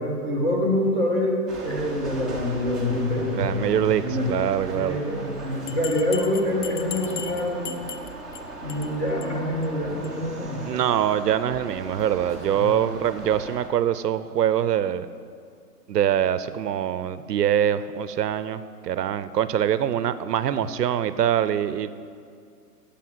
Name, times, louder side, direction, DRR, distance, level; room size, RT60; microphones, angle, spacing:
voice 1, 0.0-4.3 4.7-7.8 8.6-10.7 12.5-12.7, left 1 dB, 15° left, -3 dB, 1.9 m, -26 dB
sound 1, 1.5-13.7, right 2 dB, ahead, 1.0 m, -38 dB
voice 2, 3.4-5.0 10.7-15.1 15.9-21.9, right 10 dB, 85° right, 14 dB, 0.7 m, -24 dB
Bell, 5.7-8.4 8.7-8.9 9.2-9.3 9.6-9.7 10.0-10.1, left 7 dB, 75° left, 0.9 m, -37 dB
9.3 x 7.1 x 7.6 m, 2.3 s
hypercardioid pair, 155°, 47 cm